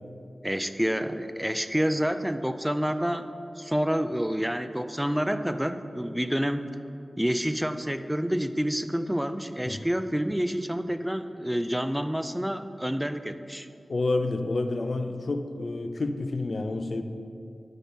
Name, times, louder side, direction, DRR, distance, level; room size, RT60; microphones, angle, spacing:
voice 1, 0.4-6.7 7.2-13.7, equal, 5° right, 10 dB, 0.3 m, -28 dB
voice 2, 13.9-17.0, left 2 dB, 60° left, 8 dB, 0.5 m, -29 dB
5.8 x 5.2 x 6.4 m, 2.5 s
cardioid pair, 45°, 0 cm